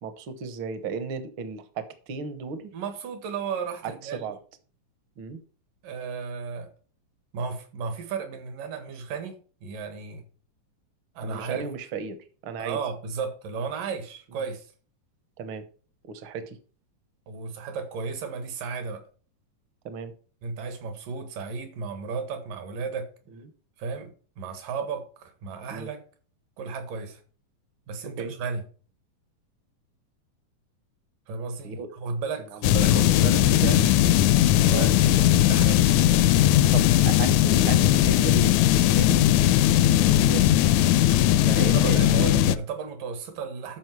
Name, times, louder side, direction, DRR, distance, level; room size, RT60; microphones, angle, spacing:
voice 1, 0.0-2.7 3.8-4.4 5.2-5.4 11.2-12.2 12.4-12.8 15.4-15.6 16.0-16.6 19.8-20.1 23.3-23.4 25.7-25.9 28.0-28.3 31.6-31.9 32.5-33.7 34.7-34.9 36.7-38.5 38.8-39.3 39.8-40.6 41.5-42.0, right 5 dB, 65° right, 10 dB, 1.3 m, -34 dB
voice 2, 2.7-4.3 5.8-6.7 7.3-10.2 11.1-11.6 12.6-14.7 17.3-19.0 20.4-23.1 23.8-24.1 24.4-26.0 26.6-27.2 27.9-28.6 31.3-33.9 34.5-36.1 41.4-43.8, right 5 dB, 80° right, 7 dB, 3.3 m, -34 dB
sound 1, 32.6-42.6, left 13 dB, 80° left, 1.8 m, -19 dB
13.0 x 5.1 x 4.7 m, 0.40 s
omnidirectional pair, 3.8 m